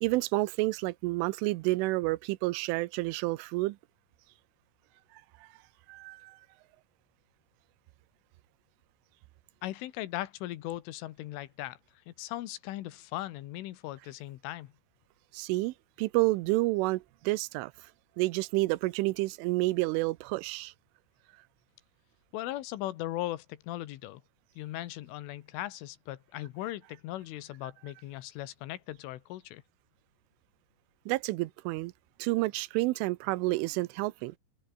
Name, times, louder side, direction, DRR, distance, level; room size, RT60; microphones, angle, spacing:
voice 1, 0.0-3.8 5.4-5.5 5.9-6.4 15.3-17.9 18.2-20.7 31.1-31.9 32.2-34.4, right 21 dB, 90° right, 3.3 m, -29 dB
voice 2, 9.6-11.8 12.1-14.7 22.3-24.2 24.6-29.6, left 15 dB, 85° left, 3.9 m, -38 dB
open air
omnidirectional pair, 5.5 m